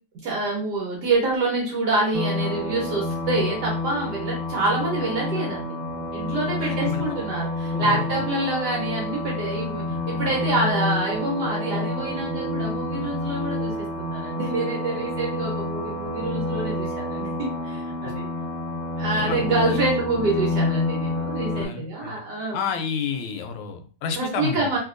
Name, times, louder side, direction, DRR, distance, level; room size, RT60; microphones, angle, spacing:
voice 1, 0.2-5.8 6.1-18.3 19.0-22.7 24.1-24.8, right 2 dB, 60° right, -3 dB, 1.3 m, -26 dB
sound 1, 2.1-21.7, left 2 dB, 85° right, 1.6 m, -28 dB
voice 2, 6.5-7.2 7.7-8.2 18.0-18.1 19.2-19.8 21.5-22.2 22.5-24.7, left 6 dB, 80° left, 6 dB, 1.4 m, -31 dB
3.3 x 2.8 x 2.5 m, 0.39 s
omnidirectional pair, 2.4 m